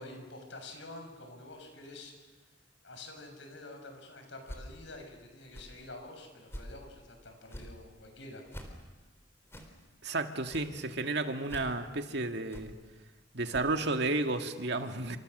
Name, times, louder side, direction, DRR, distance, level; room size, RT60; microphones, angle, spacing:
voice 1, 0.0-2.1 2.8-8.7, left 2 dB, 80° left, 4 dB, 6.7 m, -48 dB
sound 1, 4.4-4.7 5.4-5.7 6.4-6.8 7.4-7.7 8.4-8.7 9.4-9.7 10.4-10.7 11.4-11.7 12.5-12.7 13.4-13.7, equal, 15° left, 3.8 m, -45 dB
voice 2, 10.0-12.7 13.3-15.2, right 2 dB, 65° right, 6 dB, 2.0 m, -32 dB
29.5 x 27.0 x 6.7 m, 1.2 s
head